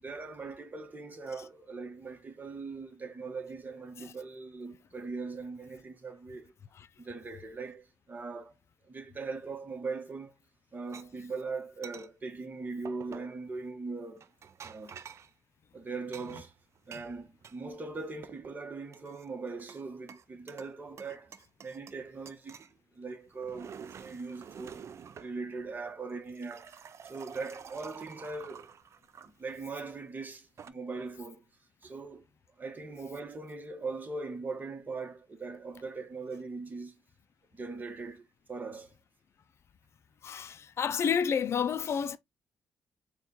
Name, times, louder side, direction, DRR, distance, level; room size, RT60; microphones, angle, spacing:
voice 1, 0.0-6.5 7.0-8.5 8.9-10.3 10.7-14.3 14.6-14.9 15.7-16.5 16.9-21.3 21.6-22.6 22.9-24.8 25.2-26.7 27.1-28.7 29.2-31.4 31.8-32.3 32.6-37.0 37.5-38.9, right 4 dB, 30° right, 1.1 m, -40 dB
sound 1, 10.9-11.1 11.8-12.1 12.9-13.4 14.2-15.3 16.1-17.6 17.9-18.5 18.9-19.8 20.1-20.7 21.0-22.0 22.3-22.7 23.3-25.3 26.1-29.6 30.3-30.7, right 7 dB, 50° right, 0.4 m, -49 dB
voice 2, 40.2-42.2, left 7 dB, 45° left, 0.4 m, -29 dB
4.4 x 2.3 x 4.0 m
cardioid pair, 110°, 6 cm